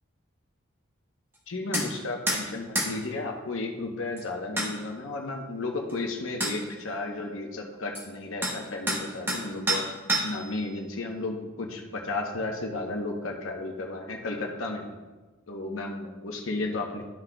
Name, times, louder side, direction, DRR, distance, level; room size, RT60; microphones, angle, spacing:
voice 1, 1.5-9.8 10.2-15.0 15.5-17.0, left 2 dB, 70° left, 1 dB, 0.9 m, -33 dB
sound 1, 1.7-1.9 2.3-2.4 2.8-2.9 4.2-4.3 4.6-4.7 5.9-6.0 6.4-6.6 8.0-8.1 8.4-8.6 8.9-9.4 9.7-10.5, right 1 dB, 10° right, 1.2 m, -27 dB
12.5 x 6.1 x 2.2 m, 1.3 s
head